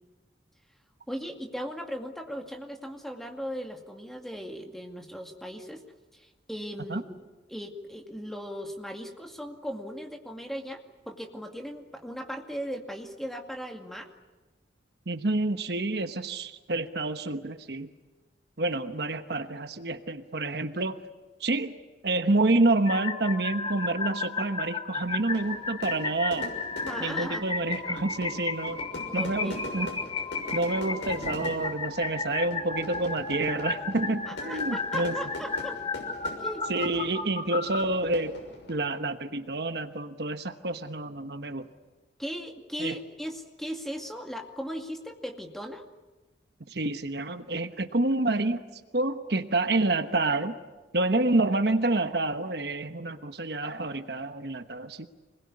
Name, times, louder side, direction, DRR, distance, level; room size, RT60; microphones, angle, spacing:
voice 1, 1.1-5.8 6.1-7.1 7.5-14.1 26.8-27.4 29.2-29.6 34.3-35.8 36.2-36.7 42.2-45.8, equal, ahead, 3 dB, 2.2 m, -38 dB
voice 2, 15.1-17.9 18.6-21.0 21.4-21.8 22.0-26.5 27.0-28.8 29.1-29.9 30.5-35.2 36.7-38.4 38.7-41.7 42.8-43.0 46.7-48.6 48.9-50.6 50.9-55.1, right 2 dB, 60° right, 9 dB, 1.1 m, -28 dB
sound 1, 22.9-37.8, left 4 dB, 30° left, 1.6 m, -34 dB
Fire / Fireworks, 25.0-39.0, left 1 dB, 80° left, 6.2 m, -42 dB
26.5 x 20.5 x 9.8 m, 1.2 s
head